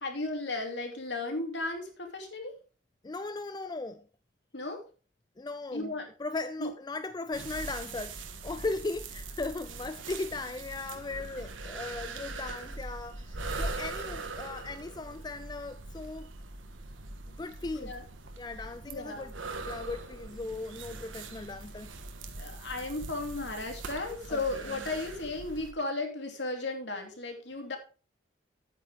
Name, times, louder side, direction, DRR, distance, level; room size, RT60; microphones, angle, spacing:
voice 1, 0.0-2.5 4.5-4.8 5.7-6.1 6.6-6.7 17.7-18.0 18.9-19.3 22.4-27.8, left 2 dB, 60° left, 2.8 m, -35 dB
voice 2, 3.0-4.0 5.4-5.9 6.2-16.3 17.3-17.9 18.4-19.3 19.6-21.9 24.3-24.8, left 3 dB, 20° left, 0.4 m, -38 dB
sound 1, 7.3-25.7, right 3 dB, 85° right, 1.5 m, -41 dB
10.5 x 9.1 x 3.6 m
head